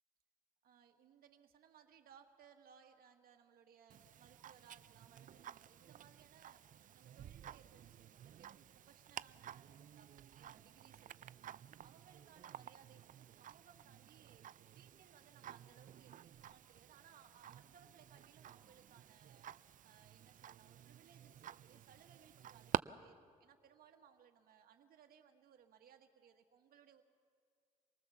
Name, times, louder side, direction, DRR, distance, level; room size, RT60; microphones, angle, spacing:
voice 1, 0.6-11.5 11.8-14.4 14.7-19.5 19.8-27.0, right 7 dB, 75° right, 4 dB, 1.7 m, -65 dB
Tick-tock, 3.9-22.8, right 10 dB, 60° right, 0.5 m, -50 dB
25.5 x 19.0 x 7.1 m, 2.1 s
supercardioid pair, 60°, 15 cm